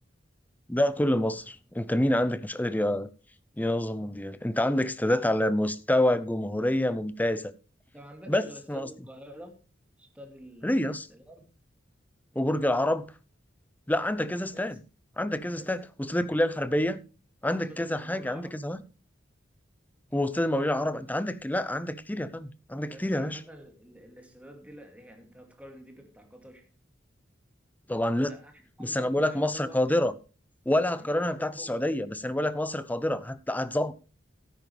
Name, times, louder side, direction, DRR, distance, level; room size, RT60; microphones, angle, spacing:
voice 1, 0.7-3.1 3.6-7.5 8.3-8.4 8.7-8.9 10.6-11.1 12.4-13.1 13.9-14.8 15.2-17.0 17.4-18.8 20.1-23.4 27.9-28.3 28.8-30.1 30.7-33.9, left 1 dB, 10° left, 0.6 m, -27 dB
voice 2, 7.9-9.6 10.0-11.4 14.5-14.8 15.5-15.8 17.7-18.6 22.9-26.7 28.2-30.0 31.0-31.9, equal, 5° right, 2.5 m, -48 dB
13.5 x 10.0 x 3.3 m
head